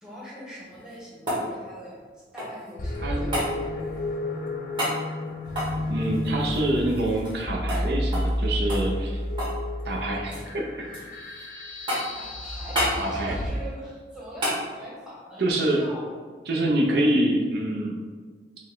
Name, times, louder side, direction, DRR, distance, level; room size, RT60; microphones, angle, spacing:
voice 1, 0.0-2.0 2.3-3.8 12.1-16.1, equal, 5° right, -6 dB, 1.0 m, -43 dB
sound 1, 0.6-2.7 3.3-3.5 4.8-5.0 5.5-7.4 7.7-7.8 8.1-8.4 8.7-9.6 9.9-10.5 10.9-11.4 11.9-12.2 12.7-13.0 14.4-14.6 17.0-17.1, equal, 25° right, 1.3 m, -30 dB
sound 2, 2.8-13.5, left 1 dB, 50° left, 0.6 m, -31 dB
voice 2, 5.9-9.2 9.8-10.7 13.0-13.4 15.4-15.8 16.5-18.0, right 1 dB, 65° right, -1 dB, 0.5 m, -25 dB
5.2 x 2.1 x 3.7 m, 1.5 s
head